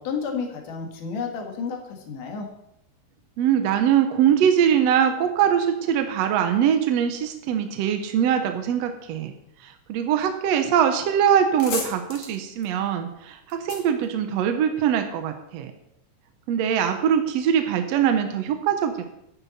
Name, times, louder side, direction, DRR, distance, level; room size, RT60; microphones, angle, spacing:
voice 1, 0.0-2.5, left 5 dB, 85° left, 2 dB, 3.2 m, -31 dB
voice 2, 3.4-9.3 9.6-15.7 16.5-19.2, right 8 dB, 70° right, 7 dB, 1.8 m, -22 dB
sound 1, 11.0-11.1 11.3-14.9, left 4 dB, 60° left, 3.2 m, -36 dB
11.5 x 9.6 x 4.1 m, 0.80 s
omnidirectional pair, 3.6 m